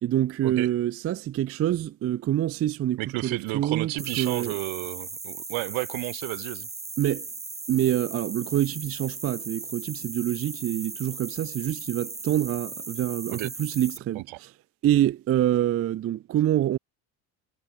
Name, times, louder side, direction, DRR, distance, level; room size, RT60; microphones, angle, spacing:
voice 1, 0.0-4.5 7.0-7.3 7.7-14.5 14.8-16.8, right 12 dB, 30° right, 0.4 m, -26 dB
voice 2, 3.0-6.7 13.3-13.5 14.1-14.4, right 23 dB, 70° right, 1.3 m, -32 dB
sound 1, 4.0-14.0, right 3 dB, 15° right, 1.2 m, -38 dB
supercardioid pair, 80°, 50 cm